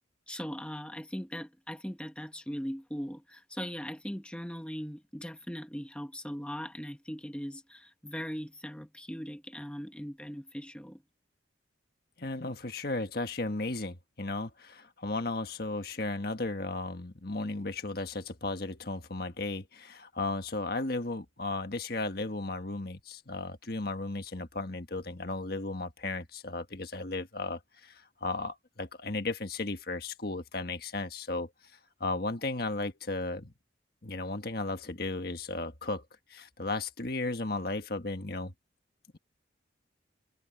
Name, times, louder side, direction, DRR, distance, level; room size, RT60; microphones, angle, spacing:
voice 1, 0.3-11.0, equal, 5° left, 1.1 m, -39 dB
voice 2, 12.2-31.5 32.0-33.5 34.0-36.0 36.3-38.5, left 2 dB, 50° left, 1.6 m, -35 dB
head